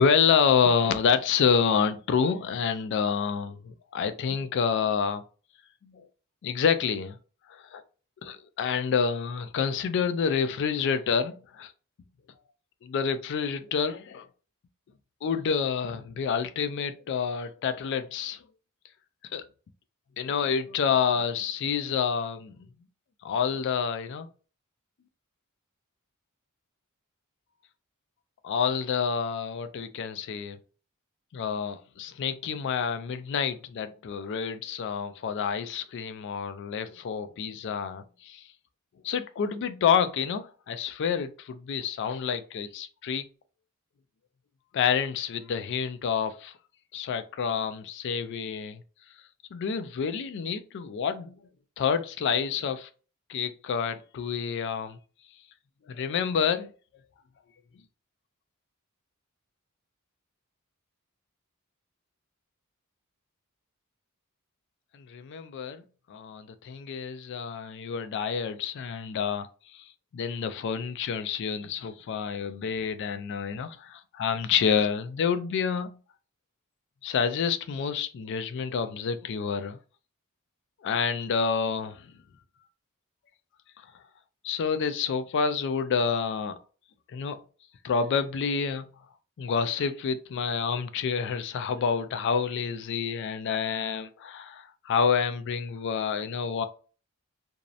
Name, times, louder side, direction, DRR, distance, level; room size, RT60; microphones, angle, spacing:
voice 1, 0.0-5.2 5.8-6.1 6.4-7.2 7.5-7.8 8.2-11.7 12.8-14.3 15.2-18.4 19.3-19.4 20.2-22.6 23.2-24.3 28.4-30.6 31.3-38.5 39.0-43.2 44.7-46.6 46.9-48.8 49.5-51.4 51.8-52.9 53.3-55.0 55.9-56.7 64.9-65.8 66.1-69.5 69.7-76.0 77.0-79.8 80.8-82.1 84.4-86.6 87.1-87.4 87.8-88.9 89.4-96.7, left 6 dB, 55° left, 0.3 m, -28 dB
2.6 x 2.0 x 2.4 m
head